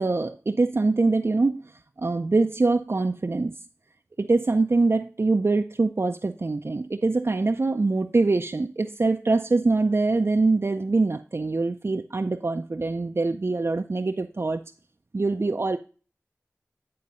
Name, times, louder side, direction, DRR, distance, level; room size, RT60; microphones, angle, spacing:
voice 1, 0.0-1.6 2.0-3.5 4.2-14.6 15.1-15.8, right 3 dB, 50° right, 5 dB, 0.5 m, -24 dB
9.6 x 3.9 x 5.4 m, 0.37 s
wide cardioid pair, 45°, 5 cm